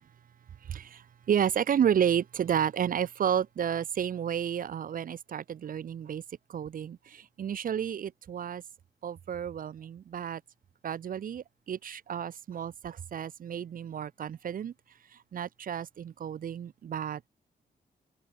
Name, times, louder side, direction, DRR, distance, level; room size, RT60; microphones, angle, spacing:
voice 1, 0.6-6.2 6.5-8.6 9.0-10.4 10.8-14.7 15.1-17.2, right 8 dB, 55° right, 0.6 m, -31 dB
cardioid pair, 105°, 17 cm